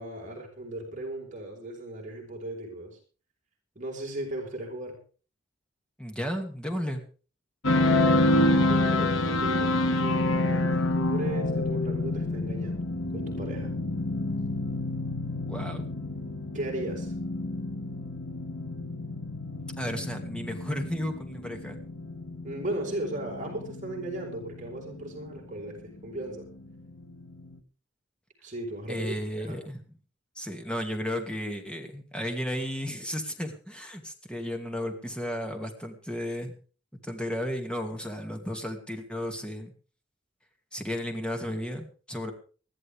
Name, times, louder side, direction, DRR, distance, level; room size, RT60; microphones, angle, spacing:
voice 1, 0.0-3.0 3.7-4.9 8.4-9.7 10.0-12.9 13.1-13.7 16.5-17.1 22.4-26.5 28.4-29.6, right 1 dB, 40° right, 0 dB, 4.6 m, -37 dB
voice 2, 6.0-7.0 15.5-15.9 19.8-21.8 28.9-29.8 30.4-36.6 37.0-39.7 40.7-42.3, equal, 5° left, 4 dB, 2.3 m, -34 dB
sound 1, 7.6-27.6, left 2 dB, 90° left, 1.7 m, -28 dB
20.5 x 14.0 x 3.5 m, 0.39 s
head